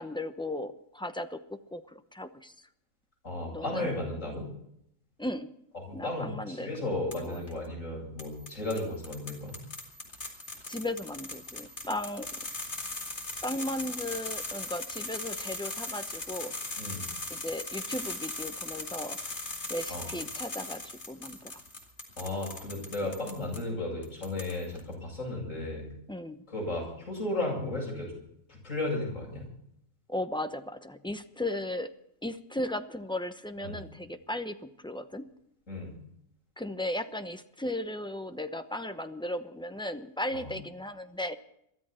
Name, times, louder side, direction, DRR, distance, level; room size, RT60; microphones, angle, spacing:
voice 1, 0.0-2.7 3.5-3.9 5.2-5.5 5.9-6.8 7.2-7.4 10.7-12.3 13.4-16.5 17.3-19.2 19.7-21.6 26.1-26.4 30.1-31.9 32.2-35.3 36.6-41.4, left 1 dB, 5° left, 8 dB, 0.6 m, -36 dB
voice 2, 3.2-4.5 5.9-9.6 16.8-17.1 19.9-20.1 22.2-25.9 26.5-28.1 28.5-29.5 33.6-33.8 35.7-35.9 40.3-40.5, left 2 dB, 70° left, -2 dB, 8.4 m, -34 dB
sound 1, 7.1-7.5 8.2-23.6 24.0-24.8, left 2 dB, 55° left, 2.9 m, -39 dB
23.0 x 13.5 x 4.4 m, 0.76 s
omnidirectional pair, 1.4 m